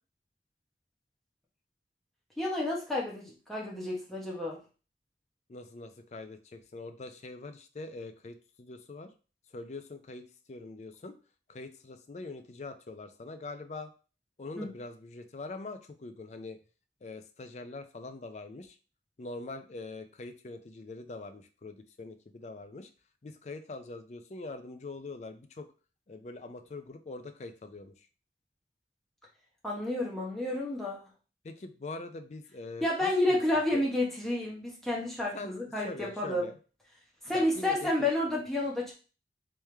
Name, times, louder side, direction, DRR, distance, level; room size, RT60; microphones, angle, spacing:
voice 1, 2.4-4.6 14.6-14.7 29.6-31.1 32.8-36.4 37.2-38.9, left 1 dB, ahead, -5 dB, 1.0 m, -30 dB
voice 2, 5.5-9.1 9.5-11.1 11.5-13.9 14.4-16.6 17.0-18.8 19.2-22.9 23.2-25.7 26.1-27.9 31.4-33.4 33.7-33.8 35.3-36.5 37.3-38.1, left 3 dB, 40° left, 8 dB, 0.4 m, -43 dB
3.4 x 3.1 x 3.3 m, 0.36 s
head